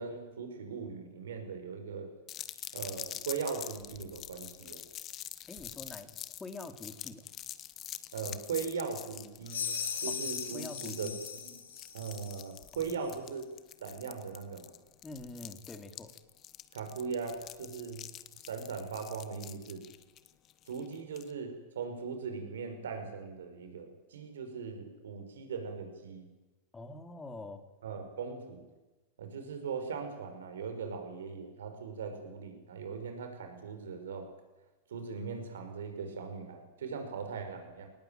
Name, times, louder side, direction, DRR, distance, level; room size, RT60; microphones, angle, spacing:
voice 1, 0.0-2.1 2.7-4.8 8.1-9.7 10.0-11.1 11.4-11.5 11.9-13.5 13.8-14.7 16.7-18.0 18.5-19.8 20.7-26.3 27.8-28.6 29.2-34.3 34.9-37.9, right 5 dB, 80° right, 6 dB, 5.7 m, -39 dB
sound 1, 2.3-21.3, left 12 dB, 40° left, 1.4 m, -46 dB
voice 2, 5.5-6.1 6.4-7.3 10.1-10.2 10.5-11.2 12.9-13.2 15.0-16.1 26.7-27.6, left 2 dB, 15° left, 7 dB, 3.1 m, -45 dB
sound 2, 9.5-12.5, left 6 dB, 80° left, 4.7 m, -38 dB
22.0 x 19.0 x 9.2 m, 1.1 s
hypercardioid pair, 95°, 0 cm